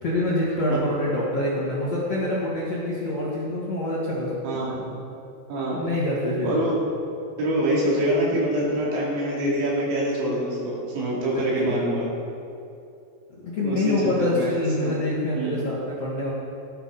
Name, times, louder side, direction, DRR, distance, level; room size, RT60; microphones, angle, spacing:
voice 1, 0.0-4.8 5.7-6.7 11.6-11.8 13.4-16.3, left 1 dB, 50° left, -7 dB, 1.9 m, -26 dB
voice 2, 4.4-4.9 5.5-5.9 6.4-6.9 7.4-12.1 13.6-14.5 14.8-14.9 15.3-15.6, right 1 dB, 75° right, -6 dB, 5.3 m, -25 dB
18.0 x 10.0 x 4.2 m, 2.7 s
omnidirectional pair, 5.3 m